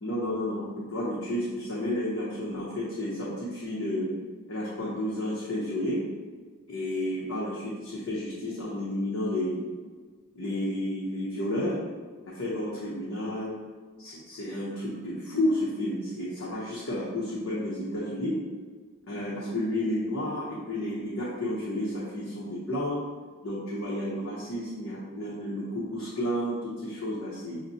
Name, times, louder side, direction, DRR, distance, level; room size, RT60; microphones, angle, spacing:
voice 1, 0.0-4.1 4.5-6.0 6.7-9.6 10.4-11.8 12.2-13.5 14.0-18.4 19.1-23.0 23.4-27.6, left 1 dB, 75° left, -7 dB, 0.8 m, -31 dB
6.4 x 2.1 x 2.8 m, 1.5 s
head